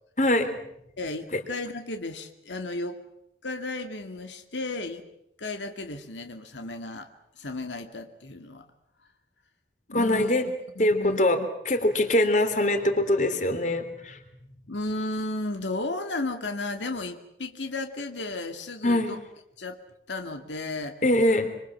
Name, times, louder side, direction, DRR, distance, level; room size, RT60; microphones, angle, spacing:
voice 1, 0.2-0.6 9.9-10.5 10.8-11.4 11.6-14.2 18.8-19.2 21.0-21.5, left 1 dB, 40° left, 8 dB, 3.2 m, -23 dB
voice 2, 1.0-3.0 3.4-5.0 5.4-8.7 9.9-10.4 10.8-11.5 14.7-19.2 19.6-19.8 20.1-21.0, left 2 dB, 90° left, 6 dB, 2.3 m, -34 dB
26.5 x 26.0 x 7.5 m, 0.78 s
head